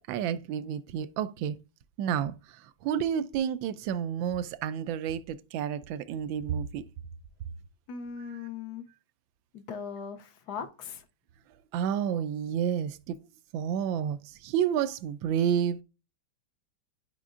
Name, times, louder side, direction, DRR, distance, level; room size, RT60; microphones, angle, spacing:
voice 1, 0.1-1.6 2.0-6.8 8.3-8.4 11.7-13.2 13.5-15.8, right 9 dB, 85° right, 1.3 m, -30 dB
voice 2, 7.9-8.8 9.5-11.0, left 6 dB, 65° left, 1.2 m, -39 dB
10.5 x 5.1 x 2.4 m
omnidirectional pair, 2.1 m